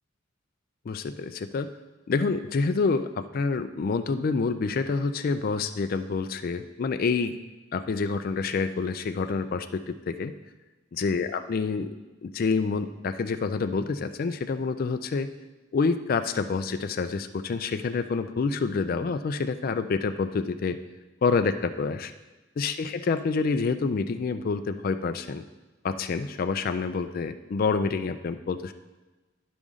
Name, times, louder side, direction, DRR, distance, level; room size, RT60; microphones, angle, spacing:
voice 1, 0.9-1.7 2.1-7.3 7.7-10.3 10.9-11.9 12.2-15.3 15.7-20.8 21.2-22.1 22.6-25.4 25.8-28.7, left 4 dB, 50° left, 8 dB, 0.4 m, -27 dB
11.5 x 5.1 x 3.7 m, 1.2 s
head